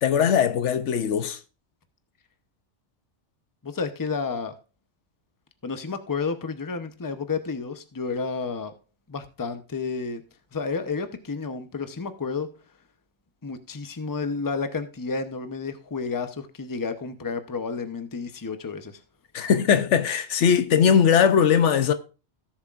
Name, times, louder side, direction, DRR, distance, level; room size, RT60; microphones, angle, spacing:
voice 1, 0.0-1.4 19.3-21.9, left 7 dB, 80° left, 1.1 m, -20 dB
voice 2, 3.6-4.5 5.6-8.7 9.1-10.2 10.5-12.5 13.4-19.0, left 4 dB, 20° left, 0.7 m, -31 dB
17.0 x 7.3 x 2.5 m
omnidirectional pair, 1.2 m